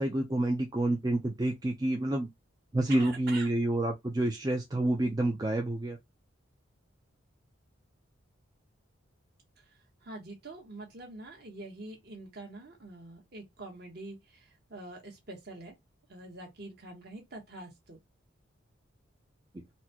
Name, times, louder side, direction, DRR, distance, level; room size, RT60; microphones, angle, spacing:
voice 1, 0.0-2.3 2.7-6.0 19.5-19.6, right 1 dB, 20° right, 0.4 m, -28 dB
voice 2, 2.9-3.5 10.0-15.7 16.1-18.0, right 2 dB, 50° right, 1.3 m, -45 dB
4.2 x 2.2 x 2.8 m
head